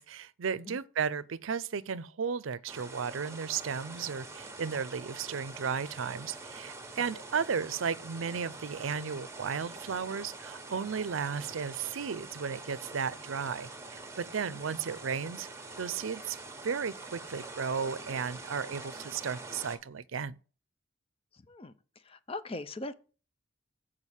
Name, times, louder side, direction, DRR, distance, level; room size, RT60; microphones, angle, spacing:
voice 1, 0.0-15.5 15.8-16.4 16.6-20.4, right 6 dB, 75° right, 0.5 m, -34 dB
sound 1, 2.7-19.8, right 3 dB, 15° right, 1.3 m, -45 dB
voice 2, 22.0-22.9, left 2 dB, 30° left, 0.6 m, -40 dB
8.2 x 4.9 x 7.2 m
head